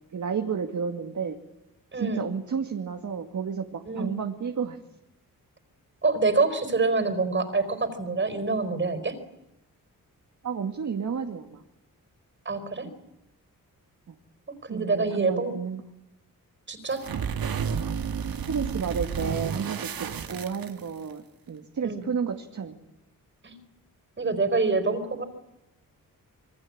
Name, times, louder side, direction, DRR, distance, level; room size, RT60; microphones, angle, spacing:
voice 1, 0.1-1.4 2.0-4.8 10.4-11.6 12.8-12.9 14.1-14.2 14.7-15.8 18.5-22.8, right 6 dB, 55° right, 5 dB, 2.3 m, -31 dB
voice 2, 1.9-2.2 3.9-4.1 6.0-9.1 12.4-12.9 14.6-15.5 16.7-17.0 21.8-22.0 23.4-23.6 24.2-25.3, right 3 dB, 35° right, 11 dB, 4.5 m, -26 dB
sound 1, 16.9-21.1, right 7 dB, 80° right, 2.3 m, -31 dB
27.5 x 24.0 x 8.8 m, 0.91 s
wide cardioid pair, 145°, 35 cm